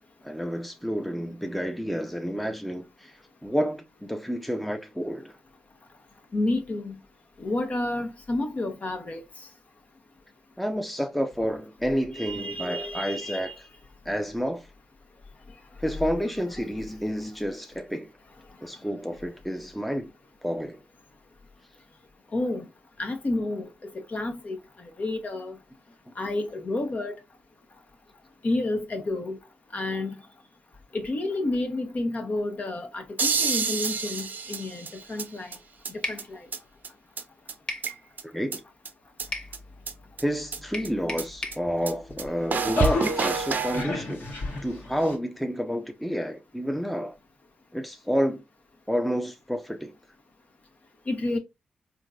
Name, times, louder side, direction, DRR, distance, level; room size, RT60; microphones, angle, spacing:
voice 1, 0.2-3.1 3.4-5.3 10.6-13.5 14.1-14.7 15.8-18.1 18.6-20.1 20.4-20.8 38.3-38.6 40.2-44.3 44.6-47.2 47.7-48.4 48.9-49.9, equal, ahead, 0.7 m, -29 dB
voice 2, 6.3-6.9 7.4-9.2 12.1-13.5 22.3-22.7 23.0-25.6 26.2-27.2 28.4-29.4 29.7-30.1 30.9-35.5 35.9-36.5 51.1-51.4, left 2 dB, 45° left, 1.0 m, -30 dB
sound 1, 33.2-35.2 35.5-35.6 35.8-35.9 36.2-36.3 36.5-36.6 36.8-36.9 37.2-37.3 37.5-38.2 38.5-38.6 38.9-39.0 39.2-39.3 39.5-39.6 39.9-40.0 40.2-40.3 40.5-40.6 40.8-40.9 41.2-41.3 41.5-41.6 41.9-42.0 42.2-42.3 42.5-43.8, right 5 dB, 60° right, 0.6 m, -28 dB
sound 2, 36.0-36.3 37.7-37.9 39.3-39.5 40.7-41.6, left 2 dB, 25° left, 0.9 m, -34 dB
sound 3, 41.7-45.1, left 2 dB, 70° left, 1.4 m, -32 dB
3.7 x 2.7 x 2.3 m
cardioid pair, 55°, 3 cm